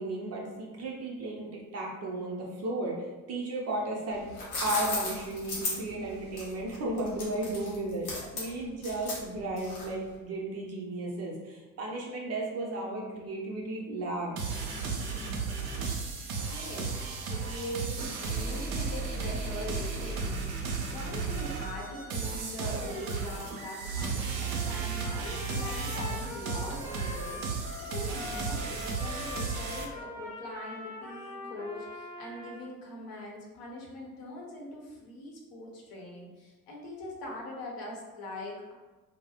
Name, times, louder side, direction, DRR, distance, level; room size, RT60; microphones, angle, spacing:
voice 1, 0.0-4.3 4.6-14.3, right 1 dB, 35° right, -2 dB, 0.6 m, -34 dB
sound 1, 4.1-10.1, left 2 dB, 85° left, 0.6 m, -36 dB
sound 2, 14.4-29.8, right 4 dB, 75° right, 0.5 m, -34 dB
voice 2, 16.4-38.7, left 1 dB, 55° left, -2 dB, 0.8 m, -42 dB
Trumpet, 24.3-32.6, left 2 dB, 5° left, 0.7 m, -42 dB
2.1 x 2.0 x 2.8 m, 1.2 s
figure-of-eight pair, 55°, 43 cm